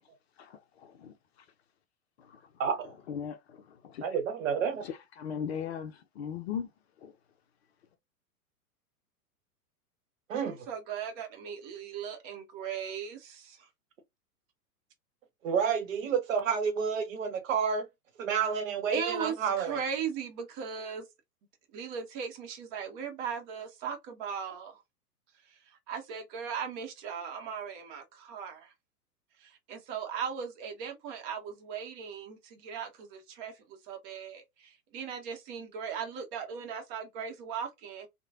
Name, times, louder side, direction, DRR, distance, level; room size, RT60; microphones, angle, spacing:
voice 1, 0.4-1.1 2.3-2.4 3.1-4.0 4.8-6.7 7.0-7.1, left 7 dB, 45° left, 0.5 m, -38 dB
voice 2, 2.6-2.9 4.0-4.8 10.3-10.6 15.4-17.9 18.2-19.8, right 7 dB, 55° right, 1.0 m, -30 dB
voice 3, 10.4-13.7 18.9-21.0 21.7-24.8 25.9-28.7 29.4-38.1, right 7 dB, 35° right, 0.9 m, -38 dB
3.0 x 2.2 x 2.4 m
figure-of-eight pair, 105°, 46 cm